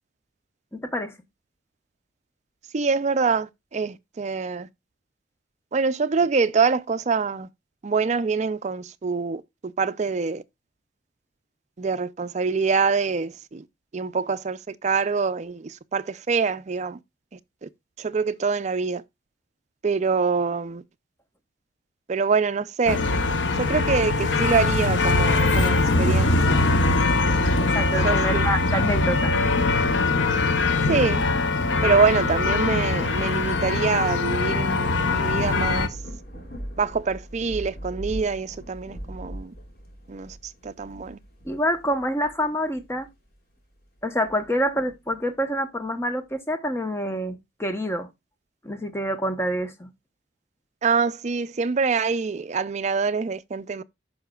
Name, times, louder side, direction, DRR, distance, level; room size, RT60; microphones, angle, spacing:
voice 1, 0.7-1.1 27.6-29.4 41.4-43.1 44.0-48.1 48.6-49.9, equal, 15° left, 0.9 m, -27 dB
voice 2, 2.7-4.7 5.7-7.5 7.8-10.4 11.8-13.6 13.9-17.0 17.6-17.7 18.0-19.0 19.8-20.8 22.1-23.0 23.6-26.6 28.0-28.5 30.9-31.2 31.8-35.9 36.8-39.5 40.1-40.4 40.6-41.2 50.8-53.8, right 5 dB, 35° right, 0.4 m, -25 dB
sound 1, 22.9-35.9, left 3 dB, 70° left, 0.8 m, -22 dB
Thunder / Rain, 34.6-43.3 43.8-45.2, equal, 50° left, 3.0 m, -40 dB
14.0 x 5.5 x 2.3 m
head